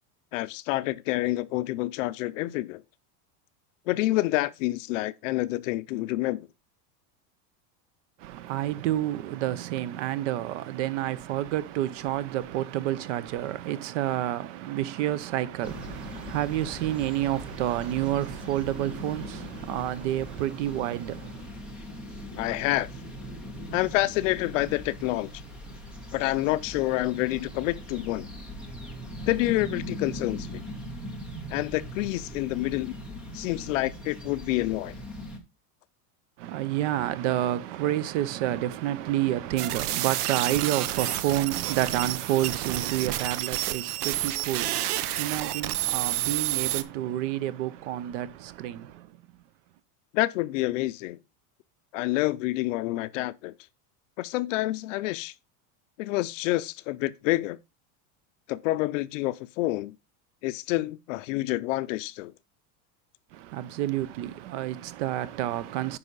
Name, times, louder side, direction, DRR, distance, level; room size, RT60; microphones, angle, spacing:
voice 1, 0.3-2.8 3.9-6.5 22.4-22.9 23.7-25.3 26.1-28.3 29.3-30.6 31.5-33.0 33.3-34.9 50.1-51.2 51.9-53.5 54.2-55.3 56.0-57.6 58.5-60.0 60.4-62.3, left 18 dB, 55° left, 0.6 m, -28 dB
voice 2, 8.2-21.5 36.4-49.1 63.3-66.0, right 13 dB, 50° right, 0.7 m, -29 dB
sound 1, 15.6-35.4, equal, ahead, 0.4 m, -40 dB
sound 2, 39.6-46.8, right 14 dB, 75° right, 0.9 m, -29 dB
9.7 x 5.5 x 3.9 m
supercardioid pair, 180°, 46 cm